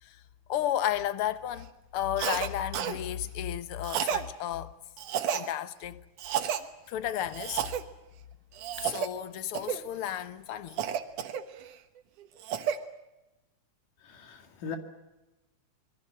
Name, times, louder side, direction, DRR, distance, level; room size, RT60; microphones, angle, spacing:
voice 1, 0.5-4.8 5.3-6.0 6.9-7.7 8.8-10.8, left 11 dB, 65° left, 1.4 m, -33 dB
Cough, 2.2-2.5 2.7-3.0 3.8-4.3 5.0-5.5 6.2-6.6 7.3-7.8 8.6-9.1 9.5-9.8 10.8-11.7 12.2-12.8, right 9 dB, 75° right, 2.8 m, -31 dB
voice 2, 14.0-14.8, left 6 dB, 85° left, 3.8 m, -39 dB
26.5 x 21.5 x 7.6 m
omnidirectional pair, 3.6 m